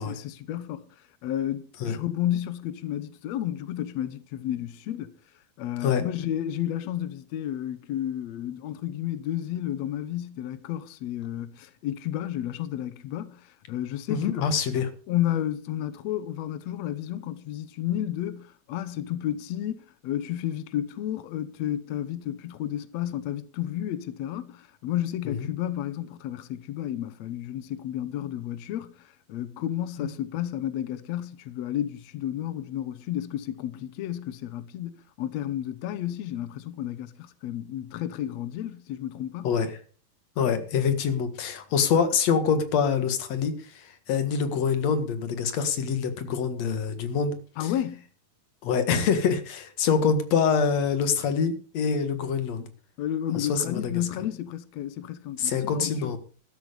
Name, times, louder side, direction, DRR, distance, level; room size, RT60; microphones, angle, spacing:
voice 1, 0.0-5.1 5.6-14.4 15.1-39.5 47.6-48.0 53.0-56.2, left 11 dB, 90° left, 1.5 m, -32 dB
voice 2, 14.1-14.9 25.2-25.5 30.0-30.1 39.4-39.7 40.4-47.3 47.6-47.7 48.6-52.6 53.3-54.0 55.4-56.2, left 6 dB, 55° left, 2.5 m, -25 dB
13.5 x 13.0 x 5.1 m
omnidirectional pair, 4.4 m